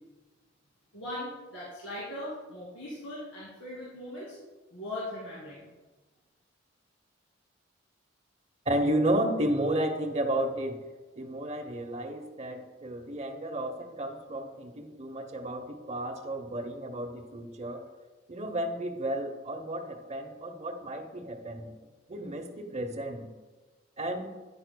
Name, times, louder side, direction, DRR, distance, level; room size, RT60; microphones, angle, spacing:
voice 1, 0.9-4.4 4.7-5.7, left 1 dB, 85° left, -9 dB, 2.4 m, -39 dB
voice 2, 8.7-10.8 11.2-17.8 18.3-21.7 22.1-23.3 24.0-24.3, right 1 dB, 35° right, 6 dB, 0.8 m, -32 dB
10.0 x 9.3 x 2.2 m, 1.2 s
head